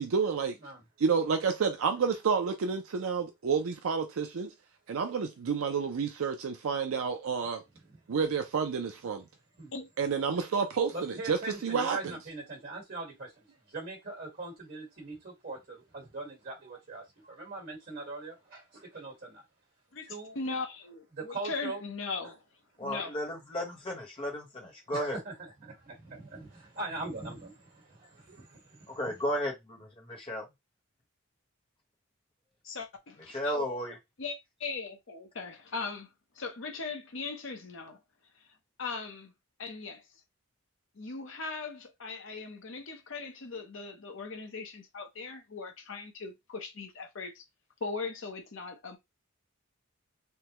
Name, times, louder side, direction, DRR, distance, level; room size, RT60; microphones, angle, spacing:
voice 1, 0.0-0.6 1.0-4.5 4.9-7.6 8.1-9.2 10.0-12.0, right 5 dB, 75° right, 0.4 m, -29 dB
voice 2, 10.9-19.4 20.0-20.4 21.1-21.8 22.2-22.3 22.9-23.1 24.9-29.1, right 3 dB, 45° right, 1.4 m, -42 dB
voice 3, 20.3-22.4 22.8-23.2 32.6-33.8 34.2-36.1 36.3-38.0 38.8-39.3 39.6-40.0 41.0-47.4 47.8-49.0, left 4 dB, 60° left, 0.8 m, -39 dB
voice 4, 22.8-25.2 28.9-30.4 33.3-34.0, equal, 25° left, 1.1 m, -34 dB
3.3 x 2.1 x 2.9 m
head